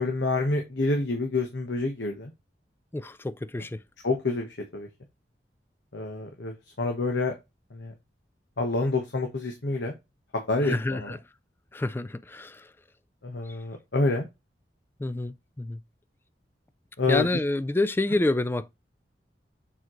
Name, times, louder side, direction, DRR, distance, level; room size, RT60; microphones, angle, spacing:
voice 1, 0.0-2.3 4.0-4.9 5.9-7.3 7.7-7.9 8.6-9.9 10.3-11.1 13.2-14.3 17.0-17.3, left 3 dB, 85° left, 1.2 m, -28 dB
voice 2, 2.9-3.8 10.6-11.2 11.7-12.7 13.5-13.6 15.0-15.8 17.1-18.7, left 2 dB, 15° left, 0.3 m, -28 dB
7.3 x 4.4 x 3.0 m
head